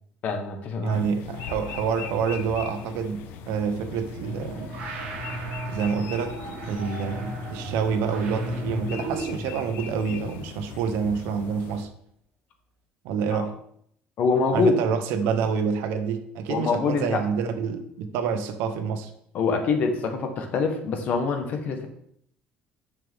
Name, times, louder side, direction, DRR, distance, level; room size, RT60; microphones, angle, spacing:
voice 1, 0.2-1.0 13.3-13.4 14.2-14.8 16.5-17.2 19.3-21.9, left 4 dB, 45° left, 1.3 m, -24 dB
voice 2, 0.8-4.7 5.7-11.9 13.0-13.5 14.5-19.1, right 6 dB, 90° right, 1.0 m, -27 dB
sound 1, 0.9-11.8, left 8 dB, 65° left, 0.8 m, -40 dB
sound 2, 4.1-9.6, right 1 dB, 60° right, 2.9 m, -34 dB
9.3 x 6.6 x 3.6 m
cardioid pair, 180°, 4 cm